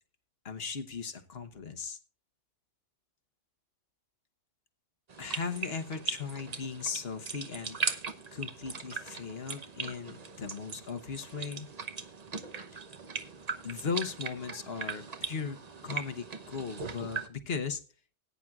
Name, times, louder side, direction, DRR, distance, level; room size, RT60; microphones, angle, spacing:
voice 1, 0.4-2.0 5.2-8.0 8.3-11.7 13.6-15.6 15.8-17.8, left 5 dB, 60° left, 7 dB, 1.3 m, -37 dB
sound 1, 5.1-17.3, right 5 dB, 40° right, 0.9 m, -39 dB
19.0 x 9.3 x 2.4 m, 0.37 s
omnidirectional pair, 1.1 m